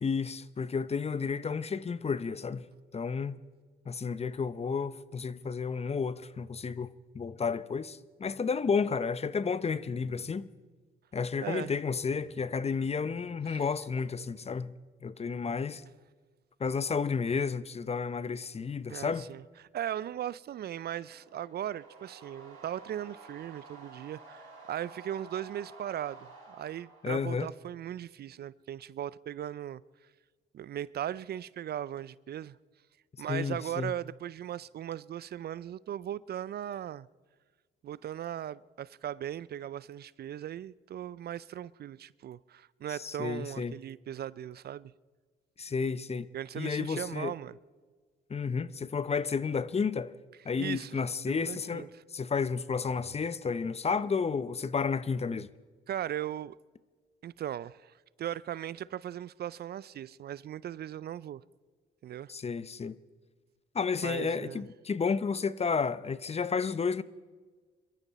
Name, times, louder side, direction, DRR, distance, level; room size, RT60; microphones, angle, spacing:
voice 1, 0.0-2.7 2.9-3.4 3.9-10.5 11.1-14.7 15.0-15.8 16.6-19.3 27.0-27.5 33.3-33.9 42.9-43.8 45.6-46.3 46.6-47.3 48.3-50.1 50.4-55.5 62.3-63.0 63.7-67.0, left 5 dB, 30° left, 0.7 m, -32 dB
voice 2, 11.4-11.7 13.5-13.6 18.9-26.2 26.5-29.8 30.5-32.6 33.2-37.1 37.8-44.9 46.3-47.6 50.6-51.0 51.3-51.9 55.9-56.6 57.2-61.4 62.0-62.3 64.0-64.6, right 11 dB, 50° right, 0.4 m, -38 dB
sound 1, 20.6-27.7, right 4 dB, 80° right, 5.3 m, -52 dB
23.0 x 13.5 x 4.1 m
supercardioid pair, 65°, 21 cm